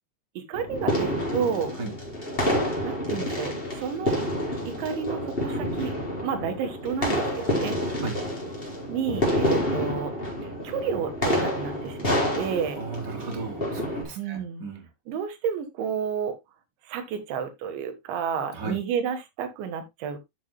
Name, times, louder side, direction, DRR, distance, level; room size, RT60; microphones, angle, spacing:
sound 1, 0.5-14.0, equal, 15° left, 3.9 m, -28 dB
voice 1, 0.5-1.8 2.8-4.2 4.7-5.9 6.2-7.8 8.9-10.1 10.4-12.8 14.2-14.6 15.1-16.4 16.9-20.3, right 7 dB, 85° right, 3.7 m, -31 dB
voice 2, 7.8-8.2 12.8-14.9 18.5-18.8, right 3 dB, 25° right, 3.4 m, -35 dB
12.0 x 7.3 x 2.2 m
omnidirectional pair, 5.1 m